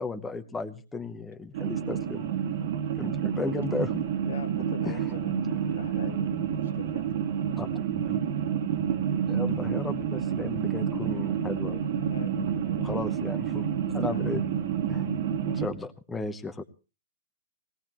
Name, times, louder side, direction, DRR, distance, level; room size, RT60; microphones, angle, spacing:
voice 1, 0.0-2.3 3.0-4.1 4.8-5.1 5.5-5.8 7.6-7.7 8.1-8.2 9.3-11.9 12.8-13.7 13.9-14.5 14.9-15.0 15.5-16.6, left 3 dB, 10° left, 7 dB, 0.9 m, -35 dB
sound 1, 1.5-15.7, right 8 dB, 60° right, 1.9 m, -29 dB
voice 2, 4.3-7.4 12.1-12.9 14.1-14.3, left 7 dB, 85° left, 8 dB, 1.7 m, -44 dB
20.0 x 18.0 x 3.1 m, 0.33 s
hypercardioid pair, 155°, 0 cm